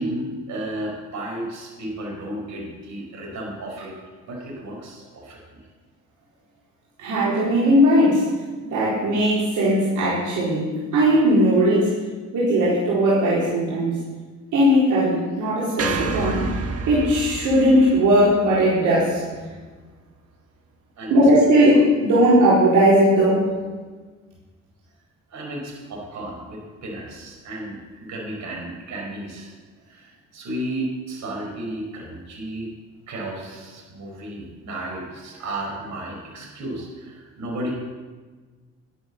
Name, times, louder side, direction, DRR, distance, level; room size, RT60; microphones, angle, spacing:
voice 1, 0.0-3.9 4.3-5.6 21.0-21.2 25.3-29.5 29.9-32.7 33.1-37.7, right 1 dB, 70° right, -1 dB, 5.6 m, -33 dB
voice 2, 7.0-8.3 8.6-12.0 12.3-14.0 14.5-16.5 16.8-19.2 21.1-23.5, equal, 85° right, -8 dB, 4.3 m, -18 dB
sound 1, 15.8-20.1, right 4 dB, 50° right, 1.5 m, -31 dB
12.0 x 10.0 x 7.3 m, 1.4 s
cardioid pair, 90°, 30 cm